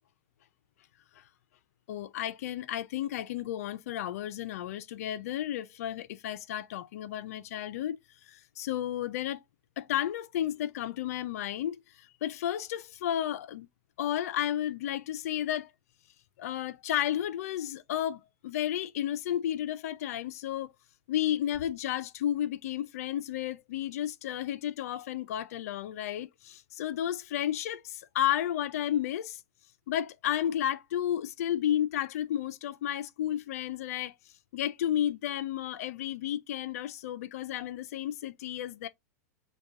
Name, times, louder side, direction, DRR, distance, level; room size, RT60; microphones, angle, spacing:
voice 1, 1.9-9.4 9.8-13.7 14.0-15.7 16.4-20.7 21.1-29.4 29.9-34.1 34.5-38.9, left 11 dB, 70° left, 0.5 m, -32 dB
5.3 x 2.3 x 3.6 m
supercardioid pair, 135°, 8 cm